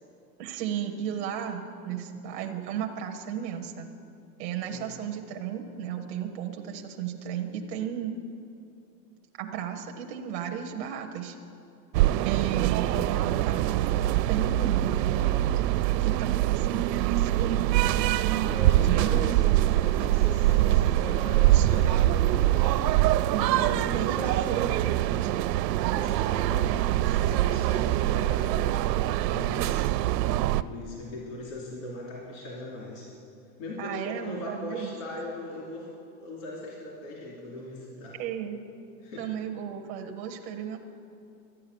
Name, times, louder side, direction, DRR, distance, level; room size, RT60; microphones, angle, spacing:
voice 1, 0.4-3.9 4.4-8.1 9.4-11.4 12.2-13.9 14.3-15.2 16.0-17.8 18.8-19.3 21.5-21.8 23.3-23.7 23.9-25.5 33.8-34.9 38.2-38.6 39.2-40.8, right 9 dB, 15° right, 3 dB, 0.4 m, -34 dB
sound 1, 11.9-30.6, right 14 dB, 75° right, 0.6 m, -24 dB
voice 2, 18.5-23.0 23.4-24.6 25.8-29.9 30.6-33.1 33.6-35.9 36.2-38.2 39.0-39.2, left 1 dB, 50° left, -4 dB, 3.1 m, -39 dB
13.0 x 9.6 x 6.7 m, 2.5 s
supercardioid pair, 155°, 50 cm